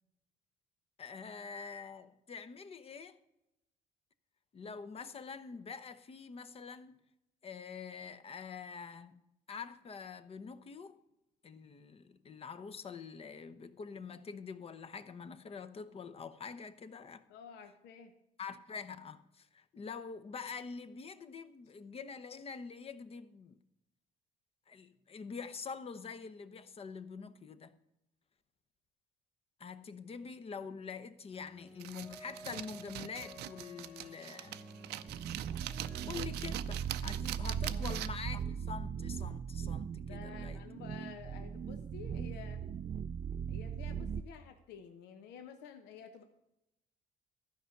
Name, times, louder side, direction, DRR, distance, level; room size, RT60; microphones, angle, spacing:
voice 1, 1.0-3.2 4.5-7.0 7.4-9.2 9.5-11.0 11.4-17.2 18.4-23.6 24.7-27.7 29.6-34.6 36.0-40.6, left 5 dB, 35° left, 0.8 m, -45 dB
voice 2, 17.3-18.1 37.7-37.8 40.0-42.6 43.5-46.2, left 7 dB, 80° left, 1.0 m, -51 dB
sound 1, 31.3-36.4, equal, 10° left, 2.0 m, -53 dB
sound 2, 31.8-38.3, right 14 dB, 80° right, 0.5 m, -43 dB
sound 3, 35.1-44.2, right 7 dB, 35° right, 0.4 m, -39 dB
13.0 x 5.4 x 7.7 m
cardioid pair, 110°, 17 cm